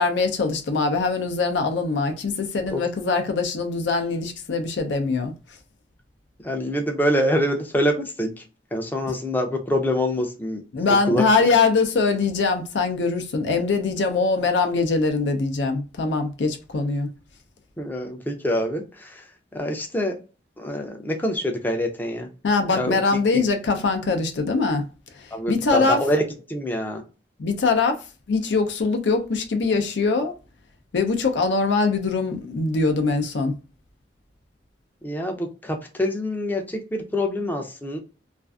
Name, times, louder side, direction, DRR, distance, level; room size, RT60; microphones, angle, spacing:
voice 1, 0.0-5.3 9.0-9.1 10.7-17.1 22.4-24.8 25.2-26.0 27.4-30.3 30.9-33.5, left 4 dB, 80° left, 0.5 m, -22 dB
voice 2, 6.4-8.4 8.7-10.6 10.9-11.2 17.8-19.2 19.5-20.1 20.6-22.3 22.7-23.0 25.3-26.2 26.5-27.0 35.0-38.0, equal, 10° left, 0.4 m, -25 dB
2.5 x 2.4 x 2.3 m
head